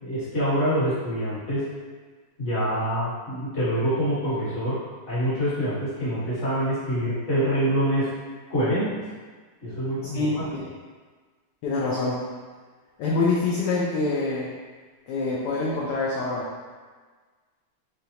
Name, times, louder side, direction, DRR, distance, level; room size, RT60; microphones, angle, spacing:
voice 1, 0.0-1.6 2.4-4.8 5.1-8.1 8.5-8.9 9.6-10.5, equal, 40° left, -10 dB, 1.7 m, -25 dB
voice 2, 10.1-10.7 11.6-12.2 13.0-14.5 15.1-16.4, left 3 dB, 70° left, -6 dB, 1.1 m, -25 dB
3.9 x 3.5 x 2.8 m, 1.4 s
omnidirectional pair, 2.1 m